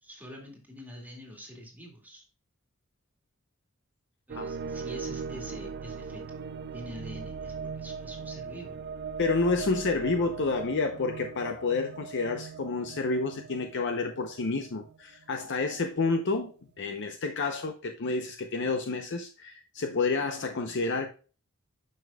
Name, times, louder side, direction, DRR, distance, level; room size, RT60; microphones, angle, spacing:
voice 1, 0.0-2.2 4.3-6.5 6.7-8.8, equal, 10° right, 2.0 m, -45 dB
sound 1, 4.3-15.3, right 5 dB, 50° right, 0.4 m, -40 dB
voice 2, 9.2-21.1, left 3 dB, 60° left, 0.6 m, -29 dB
9.4 x 5.5 x 2.2 m
head